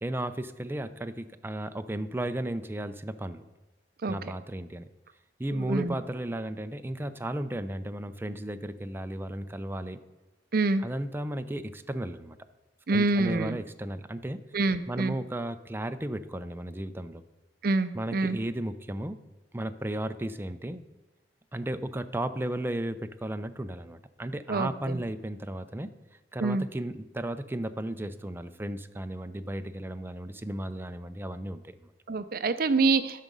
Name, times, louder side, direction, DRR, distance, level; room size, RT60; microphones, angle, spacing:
voice 1, 0.0-3.4 4.1-4.8 5.4-10.0 10.8-12.4 12.9-14.4 14.9-17.2 17.9-19.2 19.5-20.8 21.5-25.9 26.3-31.9, right 1 dB, 15° right, 9 dB, 0.5 m, -34 dB
voice 2, 5.5-6.0 10.5-10.8 12.9-13.6 14.5-15.2 17.6-18.4 24.5-25.0 26.4-26.7 32.1-33.2, right 3 dB, 55° right, 12 dB, 0.6 m, -26 dB
11.5 x 6.1 x 5.4 m, 1.1 s
head